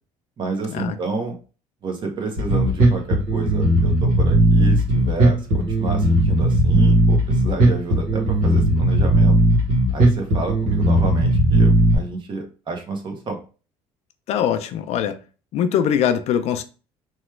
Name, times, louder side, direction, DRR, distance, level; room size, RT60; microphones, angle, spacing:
voice 1, 0.4-1.4 1.8-9.4 9.9-13.4, right 3 dB, 40° right, 0.9 m, -29 dB
Bass guitar, 2.4-12.0, right 1 dB, 80° right, 1.2 m, -17 dB
voice 2, 14.3-15.2 15.5-16.6, left 9 dB, 60° left, 0.4 m, -22 dB
3.0 x 2.3 x 3.1 m
cardioid pair, 105°, 12 cm